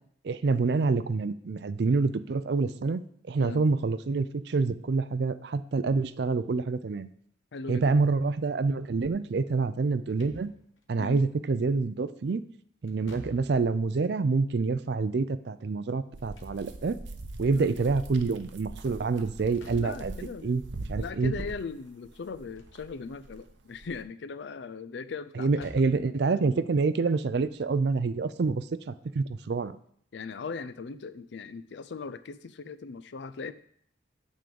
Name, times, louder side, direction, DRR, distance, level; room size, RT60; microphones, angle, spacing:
voice 1, 0.2-3.0 3.3-7.1 7.7-10.5 10.9-12.4 12.8-17.0 17.4-20.2 20.4-20.6 20.9-21.3 25.4-29.8, right 4 dB, 60° right, 14 dB, 0.4 m, -27 dB
voice 2, 7.5-7.9 11.0-11.2 17.5-17.8 19.7-20.5 21.0-25.7 30.1-33.5, left 4 dB, 65° left, 14 dB, 0.4 m, -39 dB
Slam / Thump thud, 10.0-10.9 12.9-13.8 16.0-17.1 19.4-20.2 22.3-22.8 23.2-23.3 25.3-26.1, equal, 85° left, 1.1 m, -49 dB
sound 1, 16.1-24.0, right 2 dB, 75° right, 0.8 m, -42 dB
9.1 x 3.8 x 6.9 m, 0.64 s
head